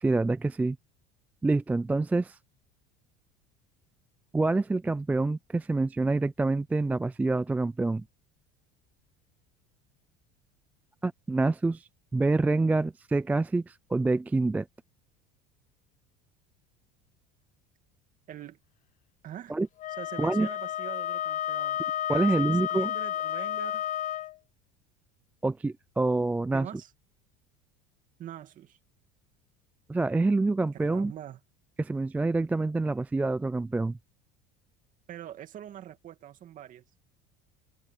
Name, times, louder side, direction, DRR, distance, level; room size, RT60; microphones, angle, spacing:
voice 1, 0.0-0.8 1.4-2.4 4.3-8.0 11.0-14.7 19.5-19.7 20.2-20.5 22.1-22.9 25.4-26.7 29.9-31.1 31.8-34.0, right 3 dB, 10° right, 0.4 m, -26 dB
voice 2, 18.3-18.6 19.2-19.5 20.0-21.8 22.1-23.9 26.5-26.9 28.2-28.8 30.7-31.4 35.1-36.8, right 11 dB, 40° right, 2.5 m, -44 dB
Wind instrument woodwind instrument, 19.8-24.3, left 11 dB, 40° left, 0.8 m, -31 dB
supercardioid pair, 125°, 20 cm